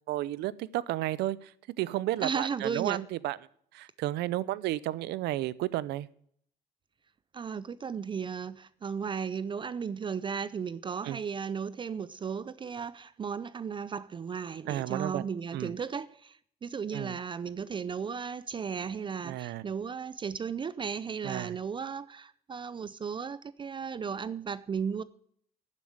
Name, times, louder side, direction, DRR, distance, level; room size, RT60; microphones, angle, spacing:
voice 1, 0.1-1.5 1.8-3.4 3.7-6.1 11.0-11.2 14.7-15.2 15.5-15.7 16.9-17.2 19.2-19.6 21.2-21.6, right 15 dB, 80° right, 0.6 m, -32 dB
voice 2, 2.2-3.0 7.3-25.0, right 6 dB, 30° right, 0.5 m, -35 dB
9.7 x 7.5 x 8.7 m
cardioid pair, 110°, 17 cm